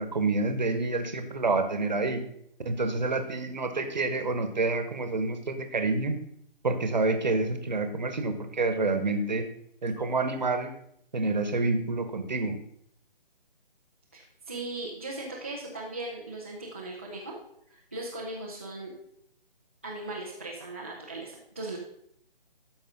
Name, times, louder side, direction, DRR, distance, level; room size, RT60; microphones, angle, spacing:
voice 1, 0.0-2.2 2.6-6.2 6.6-9.5 9.8-10.7 11.1-12.6, right 3 dB, 50° right, 8 dB, 1.2 m, -28 dB
voice 2, 14.1-17.3 17.7-18.9 19.8-21.8, right 2 dB, 15° right, -6 dB, 0.5 m, -38 dB
13.5 x 5.3 x 3.7 m, 0.72 s
figure-of-eight pair, 150°, 29 cm